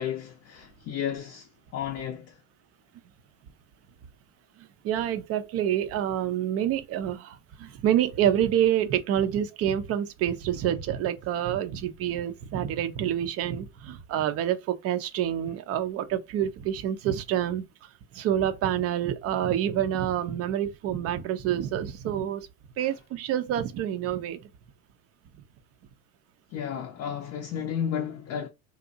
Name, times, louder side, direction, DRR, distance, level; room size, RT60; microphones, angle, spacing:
voice 1, 0.0-2.4 7.7-7.8 22.8-22.9 26.5-28.5, left 8 dB, 40° left, 0.5 m, -33 dB
voice 2, 4.8-17.6 18.2-22.4 22.8-24.4, right 10 dB, 35° right, 0.4 m, -27 dB
2.5 x 2.0 x 2.6 m
hypercardioid pair, 80°, 41 cm